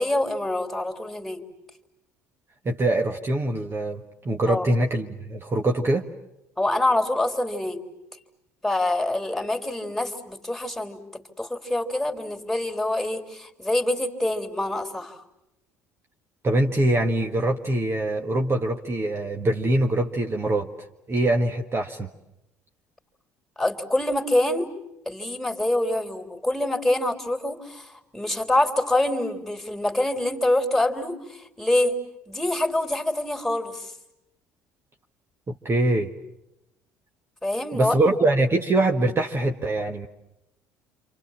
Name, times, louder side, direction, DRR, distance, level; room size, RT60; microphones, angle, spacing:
voice 1, 0.0-1.4 4.5-4.7 6.6-7.8 8.6-15.2 23.6-24.7 25.1-31.9 32.3-33.9 37.4-38.0, left 1 dB, 5° left, 4 dB, 3.6 m, -25 dB
voice 2, 2.7-6.1 16.4-20.7 21.1-22.1 35.5-36.1 37.7-40.1, right 1 dB, 30° right, 3 dB, 1.8 m, -23 dB
28.0 x 28.0 x 7.4 m, 0.87 s
hypercardioid pair, 60°, 8 cm